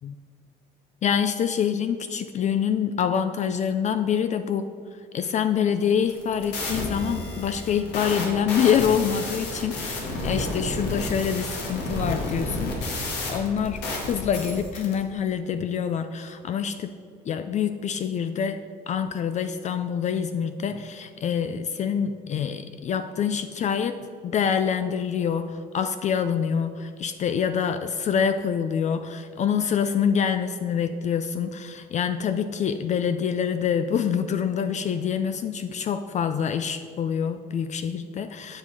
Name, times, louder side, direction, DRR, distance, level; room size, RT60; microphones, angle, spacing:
voice 1, 1.0-4.7 5.1-13.0 13.3-16.9 17.3-18.6 18.9-24.0 24.2-38.6, left 7 dB, 45° left, 10 dB, 0.4 m, -26 dB
sound 1, 6.0-14.9, left 1 dB, 85° left, 1.8 m, -31 dB
8.9 x 5.5 x 4.7 m, 2.3 s
cardioid pair, 110°, 17 cm